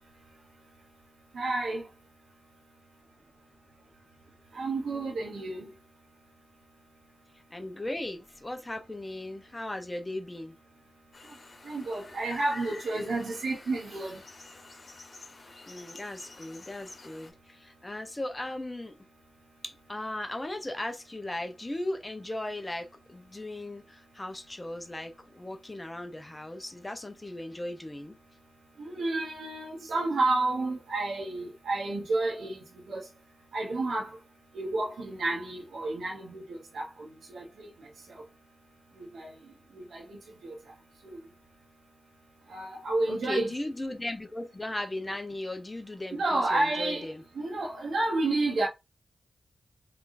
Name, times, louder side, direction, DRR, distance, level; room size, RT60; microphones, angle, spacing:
voice 1, 1.3-1.8 4.5-5.7 11.6-14.2 28.9-32.6 32.9-33.1 33.5-34.2 34.5-37.7 39.0-39.3 39.7-40.6 42.5-43.5 46.1-47.1 47.3-48.7, right 2 dB, 85° right, 0.9 m, -30 dB
voice 2, 7.5-10.5 15.7-19.0 19.6-28.2 43.1-47.2, left 1 dB, 25° left, 0.8 m, -37 dB
sound 1, 11.1-17.3, left 3 dB, 50° left, 1.3 m, -49 dB
3.6 x 3.4 x 2.6 m
cardioid pair, 55°, 0 cm